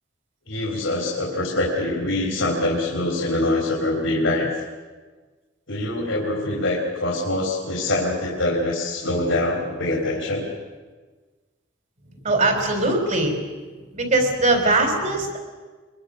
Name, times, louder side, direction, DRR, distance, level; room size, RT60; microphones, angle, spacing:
voice 1, 0.5-4.5 5.7-10.5, left 1 dB, 90° left, 0 dB, 3.6 m, -24 dB
voice 2, 12.2-13.4 13.9-15.4, right 2 dB, 40° right, 4 dB, 4.3 m, -21 dB
23.5 x 22.5 x 6.5 m, 1.4 s
head